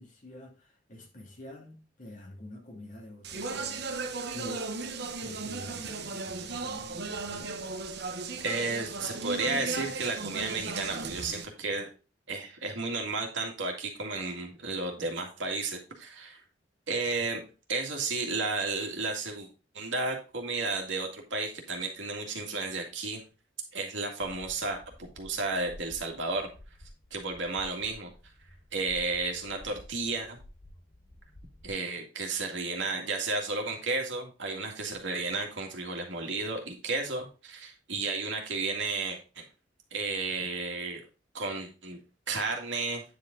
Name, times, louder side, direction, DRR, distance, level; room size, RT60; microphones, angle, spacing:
voice 1, 0.0-4.7 5.2-7.6, left 1 dB, 45° left, 2.6 m, -47 dB
Speech, 3.2-11.4, right 3 dB, 65° right, 1.0 m, -36 dB
voice 2, 8.4-11.9 12.3-16.4 16.9-17.4 17.7-19.5 19.7-23.2 23.7-26.5 27.1-28.1 28.7-30.4 31.6-39.4 39.9-41.0 41.3-42.0 42.3-43.0, right 3 dB, 85° right, 2.1 m, -33 dB
sound 1, 24.2-31.7, left 1 dB, 85° left, 3.7 m, -52 dB
9.5 x 4.9 x 3.8 m
head